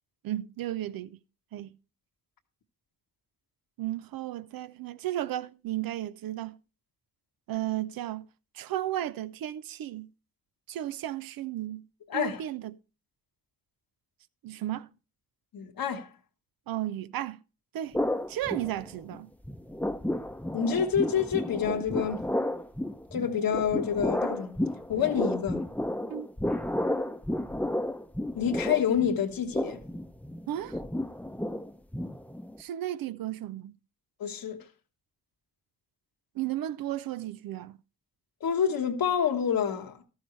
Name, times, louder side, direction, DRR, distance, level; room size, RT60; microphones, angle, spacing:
voice 1, 0.2-1.2 1.5-1.7 3.8-6.6 7.5-8.3 8.5-10.1 10.7-11.8 12.1-12.8 14.4-14.9 16.7-17.4 17.7-18.0 18.3-19.3 26.1-26.3 30.5-30.8 32.6-33.7 36.4-37.8, right 13 dB, 80° right, 0.5 m, -34 dB
voice 2, 12.1-12.4 15.5-16.1 20.5-22.3 23.1-24.6 24.9-25.6 28.3-29.8 34.2-34.6 38.4-40.0, left 8 dB, 80° left, 1.3 m, -28 dB
sound 1, 17.9-19.2 19.4-32.6, left 1 dB, 5° left, 0.7 m, -32 dB
13.0 x 9.6 x 3.1 m
supercardioid pair, 45°, 34 cm